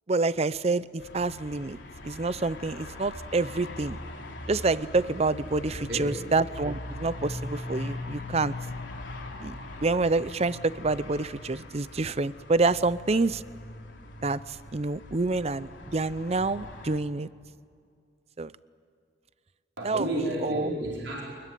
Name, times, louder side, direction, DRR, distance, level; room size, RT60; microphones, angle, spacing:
voice 1, 0.1-1.8 2.0-4.0 4.5-8.5 9.4-13.4 14.2-17.3 18.4-18.5 19.8-20.1 20.4-20.7, right 3 dB, 35° right, 17 dB, 0.6 m, -27 dB
sound 1, 1.0-17.0, left 2 dB, 90° left, 3.5 m, -41 dB
voice 2, 5.6-6.1 19.8-21.2, right 1 dB, 80° right, -3 dB, 4.8 m, -31 dB
25.0 x 21.5 x 9.4 m, 2.2 s
head